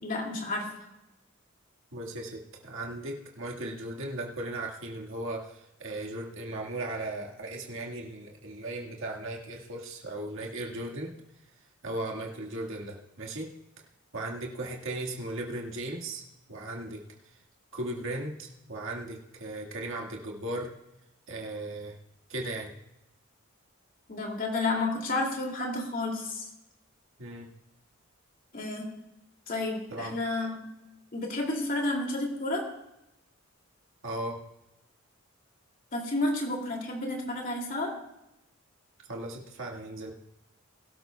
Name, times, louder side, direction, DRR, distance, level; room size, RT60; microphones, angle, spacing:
voice 1, 0.0-0.7 24.1-26.5 28.5-28.9 29.5-30.6 31.1-32.7 35.9-38.0, left 2 dB, 45° left, 1 dB, 2.6 m, -31 dB
voice 2, 1.9-11.1 11.8-13.5 14.1-16.2 16.5-17.4 17.7-20.7 21.3-22.0 22.3-22.7 27.2-27.5 29.9-30.2 34.0-34.4 39.1-40.1, right 1 dB, 65° right, -1 dB, 1.8 m, -37 dB
21.5 x 12.0 x 2.3 m, 0.89 s
head